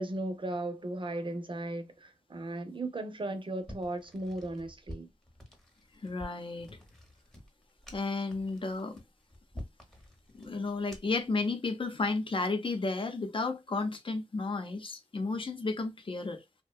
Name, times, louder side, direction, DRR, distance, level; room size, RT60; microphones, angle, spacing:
voice 1, 0.0-5.1, right 2 dB, 45° right, 0.6 m, -36 dB
sound 1, 3.6-11.3, equal, 5° left, 0.8 m, -49 dB
voice 2, 6.0-6.8 7.9-9.0 10.3-16.4, left 3 dB, 45° left, 0.6 m, -33 dB
2.6 x 2.2 x 2.2 m
wide cardioid pair, 65°, 12 cm